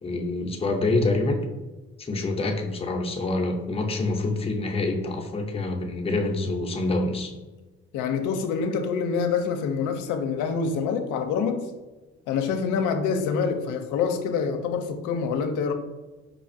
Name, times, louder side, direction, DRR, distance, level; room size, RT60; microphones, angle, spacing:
voice 1, 0.0-1.4 2.0-7.3, left 2 dB, 20° left, 2 dB, 0.5 m, -26 dB
voice 2, 7.9-11.7 12.3-15.7, left 6 dB, 90° left, 6 dB, 0.5 m, -26 dB
4.9 x 2.3 x 2.5 m, 1.2 s
cardioid pair, 90°, 30 cm